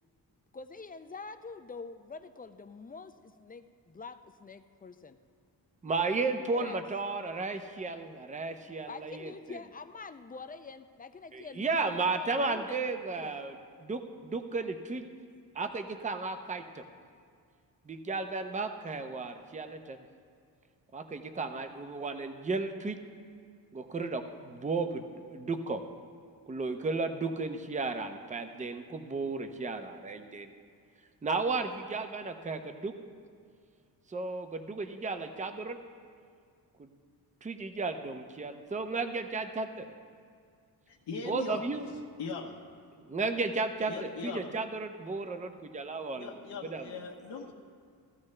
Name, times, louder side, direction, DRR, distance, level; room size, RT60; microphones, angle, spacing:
voice 1, 0.5-5.2 6.4-6.8 8.9-13.4 44.0-44.7, left 4 dB, 20° left, 9 dB, 0.5 m, -46 dB
voice 2, 5.8-9.6 11.3-13.5 13.8-15.0 15.5-16.8 17.9-20.0 20.9-23.0 23.7-25.8 26.5-30.5 31.2-32.9 34.1-35.8 36.8-36.9 37.4-39.8 41.3-41.9 43.1-46.3 46.6-47.0, right 3 dB, 20° right, 7 dB, 0.7 m, -34 dB
voice 3, 40.9-41.7 42.2-42.5 43.9-44.5 46.2-47.5, left 5 dB, 80° left, -1 dB, 1.3 m, -39 dB
16.5 x 13.0 x 3.3 m, 2.1 s
cardioid pair, 100°, 40 cm